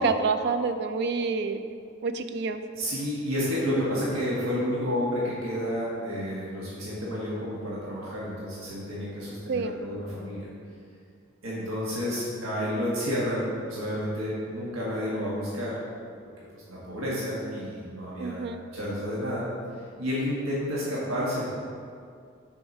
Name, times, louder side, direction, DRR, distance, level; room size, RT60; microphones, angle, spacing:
voice 1, 0.0-1.6 2.0-2.6 9.5-9.8 18.2-18.6, right 4 dB, 55° right, 9 dB, 0.4 m, -27 dB
voice 2, 2.7-10.5 11.4-15.8 16.5-18.5 18.7-19.5 20.0-21.5, equal, 85° right, -7 dB, 1.5 m, -30 dB
6.4 x 4.7 x 5.3 m, 2.3 s
head